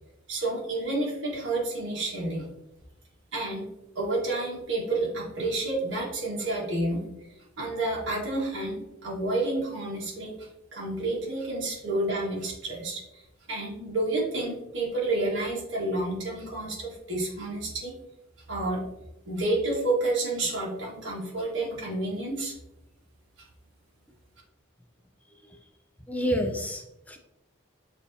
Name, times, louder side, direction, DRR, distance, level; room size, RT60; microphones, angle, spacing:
voice 1, 0.3-2.5 3.3-3.7 3.9-7.0 7.6-17.9 18.5-18.8 19.2-22.5 23.4-23.5, right 2 dB, 65° right, -5 dB, 1.5 m, -30 dB
voice 2, 26.1-27.2, equal, 10° left, 3 dB, 0.4 m, -29 dB
6.4 x 2.8 x 2.7 m, 0.87 s
head